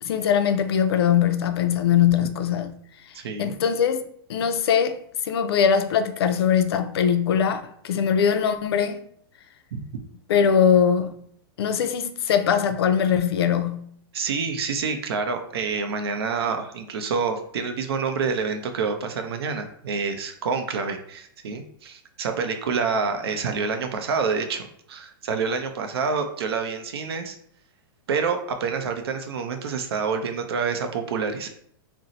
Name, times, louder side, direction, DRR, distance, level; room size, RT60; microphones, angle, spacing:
voice 1, 0.0-2.7 3.4-5.0 5.2-9.0 10.3-11.2 11.6-13.9, left 8 dB, 90° left, 0.4 m, -21 dB
voice 2, 3.1-3.6 9.7-9.8 14.1-27.4 28.1-31.5, right 5 dB, 85° right, 0.6 m, -27 dB
2.6 x 2.0 x 3.9 m
supercardioid pair, 165°, 13 cm